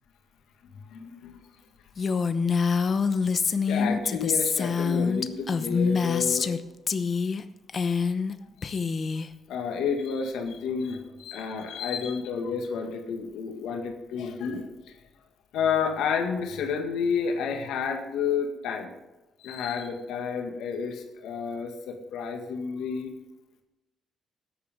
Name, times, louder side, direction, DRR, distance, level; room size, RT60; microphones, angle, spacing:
voice 1, 0.9-1.4 3.7-6.5 8.6-9.2 9.5-15.0 15.5-18.9 19.4-23.1, left 6 dB, 85° left, 3 dB, 1.9 m, -30 dB
Female speech woman speaking, 2.0-6.6 6.9-7.4 7.7-8.3 8.6-9.3, left 5 dB, 40° left, 0.8 m, -25 dB
13.5 x 10.0 x 3.7 m, 1.0 s
cardioid pair, 90°, 0 cm